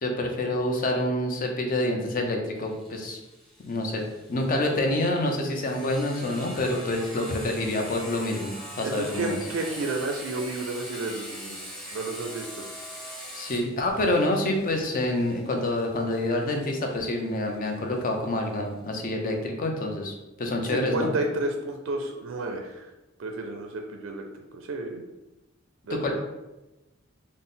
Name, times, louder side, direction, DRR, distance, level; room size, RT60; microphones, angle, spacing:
voice 1, 0.0-3.2 3.7-4.0 4.3-9.4 13.3-21.1 25.9-26.2, left 1 dB, 45° left, 2 dB, 0.6 m, -27 dB
Sawing, 2.6-18.0, equal, ahead, 0.8 m, -42 dB
voice 2, 8.8-11.6 11.9-12.6 20.7-22.9 23.2-25.0 25.9-26.2, right 2 dB, 70° right, 3 dB, 0.4 m, -31 dB
4.0 x 2.1 x 3.7 m, 1.0 s
head